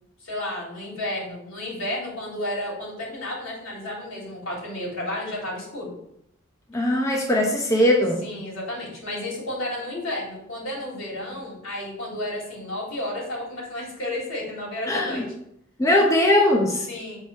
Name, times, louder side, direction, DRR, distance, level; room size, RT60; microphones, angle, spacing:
voice 1, 0.2-5.9 8.2-15.2 16.9-17.2, left 1 dB, 70° left, -4 dB, 3.3 m, -32 dB
voice 2, 6.7-8.2 14.9-15.2 15.8-16.9, left 1 dB, 15° left, 0 dB, 0.8 m, -20 dB
7.8 x 4.5 x 5.6 m, 0.76 s
head